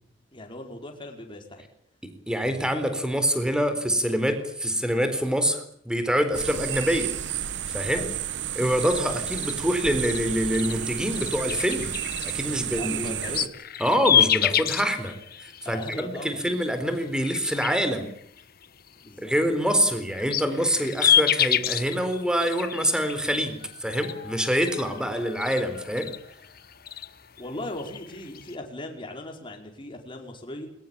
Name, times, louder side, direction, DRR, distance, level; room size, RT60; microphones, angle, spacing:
voice 1, 0.3-1.6 7.9-8.1 12.4-13.5 15.6-16.4 19.0-19.3 27.4-30.7, left 1 dB, 25° left, 2 dB, 5.0 m, -38 dB
voice 2, 2.0-7.1 7.7-8.1 8.5-12.0 12.2-13.2 13.8-15.1 15.4-15.8 16.2-18.1 19.2-26.1, equal, 5° right, 9 dB, 4.1 m, -25 dB
sound 1, 6.3-13.5, right 10 dB, 70° right, 1.2 m, -32 dB
sound 2, 8.8-16.7 17.1-19.2 19.7-28.6, left 10 dB, 55° left, 1.2 m, -29 dB
22.0 x 21.0 x 8.7 m, 0.67 s
head